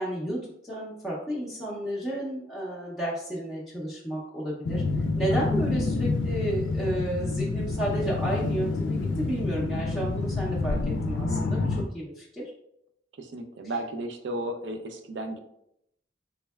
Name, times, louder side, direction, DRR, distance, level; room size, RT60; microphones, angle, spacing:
voice 1, 0.0-4.8 5.2-12.5, right 1 dB, ahead, -8 dB, 0.5 m, -32 dB
sound 1, 4.6-11.8, left 3 dB, 85° left, 0.4 m, -28 dB
voice 2, 13.2-15.4, right 1 dB, 75° right, 5 dB, 0.5 m, -34 dB
3.5 x 3.1 x 2.3 m, 0.77 s
head